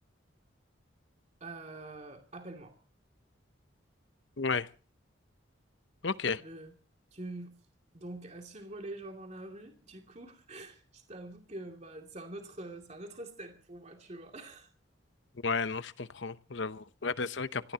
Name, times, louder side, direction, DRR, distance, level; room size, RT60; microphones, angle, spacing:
voice 1, 1.4-2.7 6.4-6.7 7.1-7.5 7.9-14.7, right 2 dB, 35° right, 3 dB, 2.6 m, -45 dB
voice 2, 4.4-4.7 6.0-6.4 15.4-17.7, left 4 dB, 65° left, 14 dB, 0.8 m, -33 dB
25.5 x 17.5 x 2.9 m, 0.37 s
head